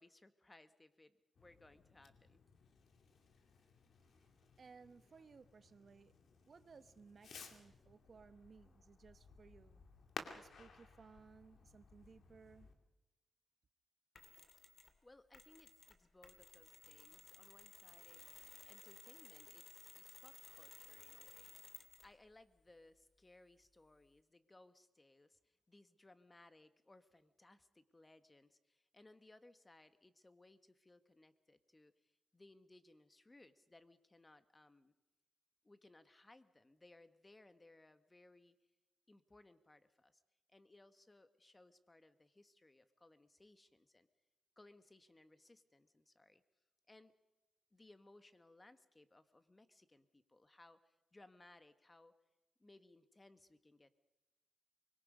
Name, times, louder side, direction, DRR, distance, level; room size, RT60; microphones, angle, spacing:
voice 1, 0.0-2.4 15.0-21.7 22.0-34.9 35.6-38.6 39.1-40.2 40.5-44.1 44.6-46.4 46.9-47.1 47.7-52.1 52.6-54.0, left 2 dB, 20° left, 11 dB, 1.4 m, -65 dB
Fireworks, 1.3-12.7, left 5 dB, 70° left, 2.3 m, -57 dB
voice 2, 4.6-6.1 6.5-9.8 10.3-12.7, right 5 dB, 50° right, 13 dB, 1.0 m, -61 dB
Mechanisms, 14.1-15.0 15.3-22.2, left 5 dB, 55° left, 2.2 m, -58 dB
24.0 x 22.0 x 5.4 m, 1.0 s
cardioid pair, 80°, 0 cm